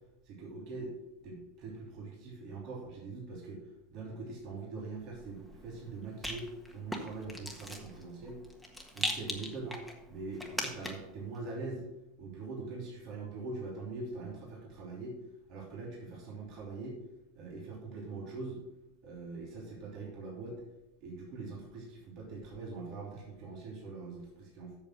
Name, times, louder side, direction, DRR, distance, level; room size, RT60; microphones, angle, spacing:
voice 1, 0.2-0.9 1.2-8.4 8.9-9.8 10.1-11.8 12.2-15.2 15.5-17.0 17.3-18.6 19.0-20.6 21.0-24.8, right 3 dB, 50° right, -2 dB, 2.9 m, -43 dB
Rattle, 5.1-11.2, left 1 dB, ahead, 1.6 m, -41 dB
8.4 x 6.6 x 6.2 m, 0.92 s
hypercardioid pair, 110°, 0 cm